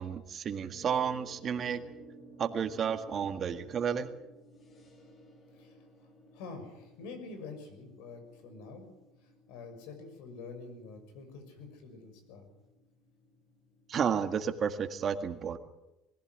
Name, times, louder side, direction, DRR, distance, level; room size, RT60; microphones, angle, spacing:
voice 1, 0.0-1.8 2.4-4.1 13.9-15.6, right 7 dB, 35° right, 8 dB, 1.7 m, -32 dB
sound 1, 0.7-14.1, right 1 dB, 35° left, 4.6 m, -56 dB
voice 2, 6.3-8.9 9.2-12.5, left 4 dB, 80° left, 7 dB, 6.2 m, -47 dB
21.5 x 15.5 x 9.6 m, 0.95 s
cardioid pair, 125°, 0 cm